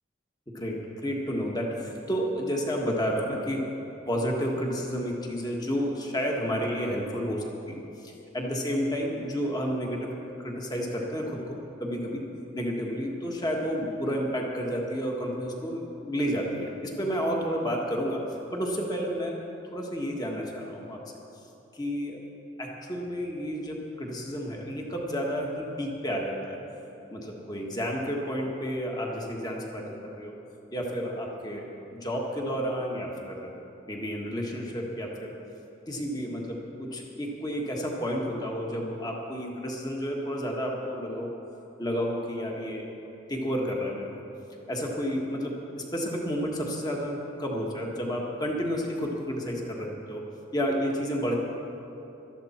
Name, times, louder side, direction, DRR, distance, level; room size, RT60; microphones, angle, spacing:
voice 1, 0.5-3.7 4.1-12.3 12.5-19.4 19.7-21.0 21.7-22.2 22.6-26.6 27.1-30.3 30.7-33.5 33.9-35.3 35.9-41.3 41.8-42.8 43.3-44.1 44.7-45.6 45.9-50.2 50.5-51.3, equal, 20° left, -1 dB, 1.6 m, -31 dB
18.0 x 13.0 x 4.4 m, 3.0 s
head